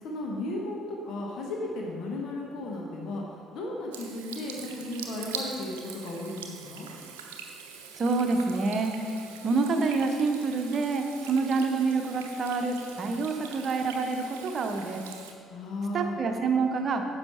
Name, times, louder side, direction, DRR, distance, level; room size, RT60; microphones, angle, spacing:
voice 1, 0.0-6.9 15.5-16.2, left 1 dB, 55° left, -1 dB, 1.3 m, -35 dB
Water tap faucet / Sink (filling or washing), 3.9-15.3, right 6 dB, 70° right, 0.7 m, -43 dB
voice 2, 8.0-8.9 9.4-15.0 15.9-17.0, right 4 dB, 40° right, 5 dB, 0.9 m, -27 dB
9.9 x 6.3 x 4.4 m, 2.7 s
figure-of-eight pair, 50°, 0 cm